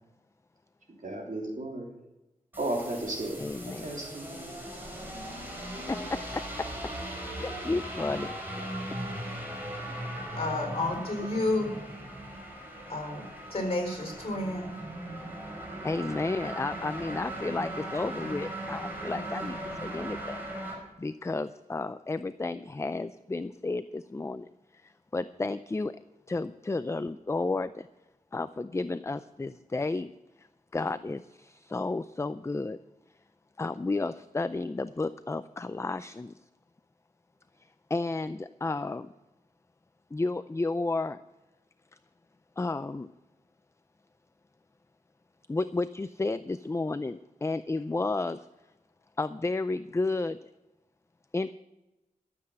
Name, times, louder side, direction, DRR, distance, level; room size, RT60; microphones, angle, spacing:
voice 1, 1.0-1.9 2.6-3.4 3.8-4.5, right 1 dB, 65° right, -1 dB, 3.2 m, -34 dB
sound 1, 2.5-20.7, right 1 dB, 15° right, 4.2 m, -38 dB
voice 2, 3.4-3.9 5.9-6.4 7.4-8.3 15.8-20.4 21.0-24.5 24.8-25.9 26.3-27.9 28.3-30.1 30.4-30.5 30.7-32.8 33.6-36.3 37.9-39.1 40.1-41.2 42.6-43.1 45.5-48.5 49.2-50.4 51.3-51.5, left 3 dB, 20° left, 13 dB, 0.4 m, -32 dB
voice 3, 10.3-11.7 12.9-14.8, left 2 dB, 45° left, 3 dB, 4.3 m, -31 dB
13.0 x 7.9 x 7.6 m, 1.0 s
wide cardioid pair, 95°, 15 cm